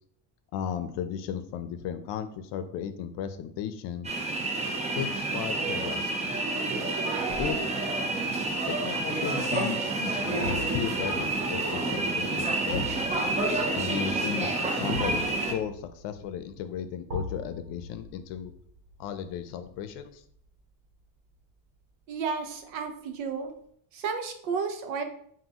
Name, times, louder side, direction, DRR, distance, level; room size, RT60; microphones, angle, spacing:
voice 1, 0.5-4.1 4.9-6.4 7.4-7.6 8.7-12.9 13.8-18.5 19.0-20.2, left 9 dB, 70° left, 10 dB, 0.6 m, -35 dB
sound 1, 4.0-15.5, right 2 dB, 15° right, 0.4 m, -29 dB
sound 2, 7.2-8.3, right 1 dB, 40° right, 1.1 m, -45 dB
sound 3, 10.4-21.4 21.7-21.9, left 2 dB, 70° right, 1.6 m, -42 dB
voice 2, 22.1-23.5 23.9-25.0, right 5 dB, 85° right, 6 dB, 0.8 m, -32 dB
5.3 x 2.7 x 2.8 m, 0.66 s
cardioid pair, 130°, 46 cm